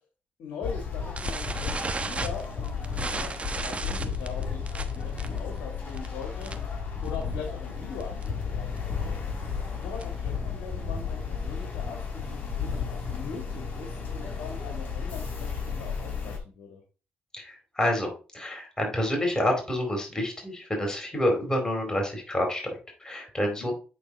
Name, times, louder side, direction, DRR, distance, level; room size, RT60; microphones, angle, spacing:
voice 1, 0.4-9.2 9.8-16.8 23.4-23.7, left 5 dB, 80° left, 2 dB, 1.7 m, -41 dB
sound 1, 0.6-16.4, left 6 dB, 50° left, 3.4 m, -33 dB
sound 2, 1.2-6.8 7.1-7.3 7.6-7.7 8.0-8.3 8.8-10.3, right 3 dB, 30° right, 1.1 m, -35 dB
voice 2, 17.3-23.7, left 1 dB, 20° left, 1 dB, 4.2 m, -28 dB
8.6 x 4.3 x 4.1 m, 0.35 s
supercardioid pair, 55°, 4 cm